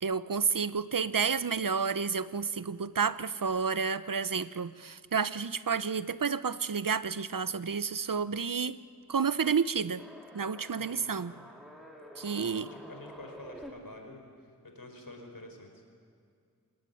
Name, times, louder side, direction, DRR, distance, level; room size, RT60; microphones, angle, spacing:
voice 1, 0.0-8.8 9.1-10.0 10.3-11.3 12.2-12.7, right 6 dB, 70° right, 15 dB, 0.8 m, -30 dB
sound 1, 9.8-13.7, equal, ahead, 4.2 m, -49 dB
voice 2, 10.7-11.6 12.2-15.9, left 2 dB, 80° left, 3 dB, 4.7 m, -49 dB
27.5 x 17.5 x 9.4 m, 2.3 s
wide cardioid pair, 45°, 34 cm